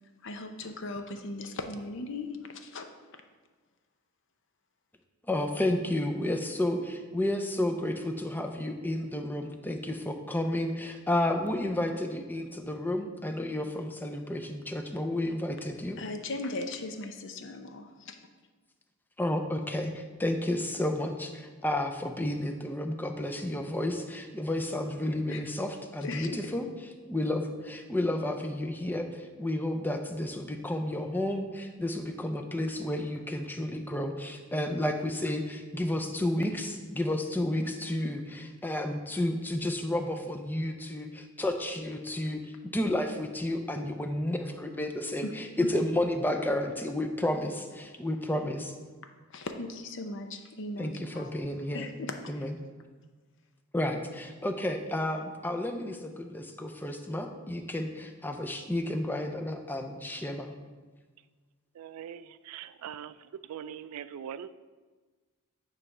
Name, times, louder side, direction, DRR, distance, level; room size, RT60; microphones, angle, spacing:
voice 1, 0.2-2.8 16.0-18.2 25.3-25.4 26.0-26.5 45.2-45.3 49.3-51.3 51.7-52.5, left 2 dB, 55° left, 6 dB, 0.7 m, -38 dB
voice 2, 5.3-16.0 19.2-26.6 27.1-42.4 42.7-48.8 50.8-51.9 52.3-52.6 53.7-60.5, left 1 dB, 10° left, 5 dB, 0.5 m, -31 dB
voice 3, 61.8-64.5, right 9 dB, 90° right, 15 dB, 0.3 m, -42 dB
9.3 x 3.3 x 6.0 m, 1.4 s
head